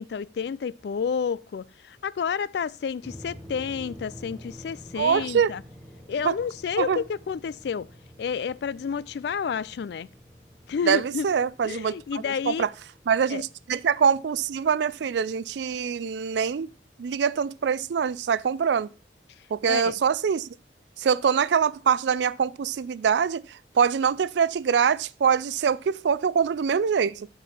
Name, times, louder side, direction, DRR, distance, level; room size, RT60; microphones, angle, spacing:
voice 1, 0.0-5.6 6.1-7.9 8.2-10.1 10.7-11.3 11.6-12.7 13.3-13.4 19.6-19.9, left 6 dB, 65° left, 0.3 m, -30 dB
sound 1, 3.0-18.2, equal, 5° left, 1.3 m, -49 dB
voice 2, 5.0-5.5 6.2-6.3 6.8-7.0 10.9-11.9 12.5-12.7 13.1-16.7 17.0-18.9 19.5-20.5 21.0-23.4 23.8-27.3, right 7 dB, 70° right, 0.4 m, -24 dB
6.7 x 4.7 x 5.7 m
head